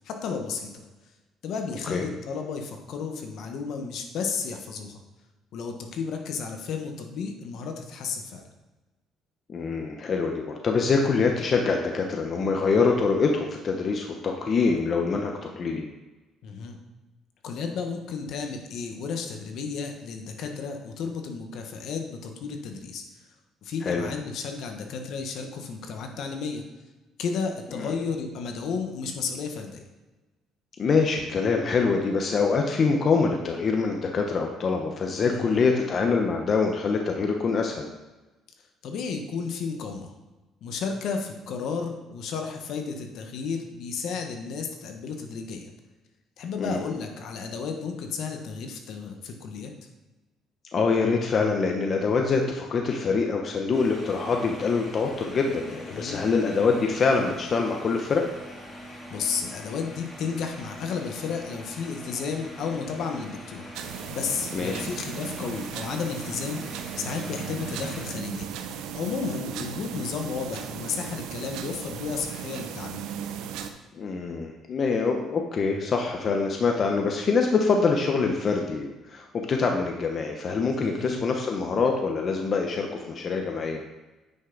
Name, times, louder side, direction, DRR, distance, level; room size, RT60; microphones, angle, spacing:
voice 1, 0.0-0.8 1.4-5.0 5.5-8.4 16.4-16.8 17.4-23.0 23.6-26.6 27.2-29.8 35.2-35.6 38.8-40.1 40.6-45.6 46.4-49.7 55.7-56.2 59.1-66.6 67.0-68.4 68.9-73.0 80.8-81.2, left 5 dB, 65° left, 4 dB, 1.2 m, -33 dB
voice 2, 9.5-15.9 23.8-24.0 27.8-28.0 30.8-37.9 46.6-46.8 50.7-58.2 64.5-64.8 73.9-83.8, left 4 dB, 40° left, 2 dB, 0.9 m, -25 dB
sound 1, 53.7-68.0, equal, 25° left, 2.8 m, -43 dB
sound 2, 63.7-73.7, right 9 dB, 90° right, 0.7 m, -36 dB
9.4 x 5.7 x 4.0 m, 1.1 s
cardioid pair, 120°, 0 cm